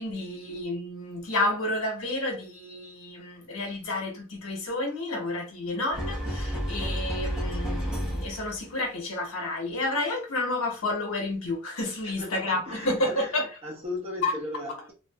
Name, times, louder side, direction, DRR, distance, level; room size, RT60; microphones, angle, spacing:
voice 1, 0.0-13.5 14.2-14.3, left 2 dB, 75° left, 1.1 m, -30 dB
sound 1, 5.9-8.6, equal, 5° right, 1.0 m, -31 dB
voice 2, 12.0-14.9, left 1 dB, 30° right, 1.1 m, -37 dB
2.6 x 2.5 x 2.3 m
head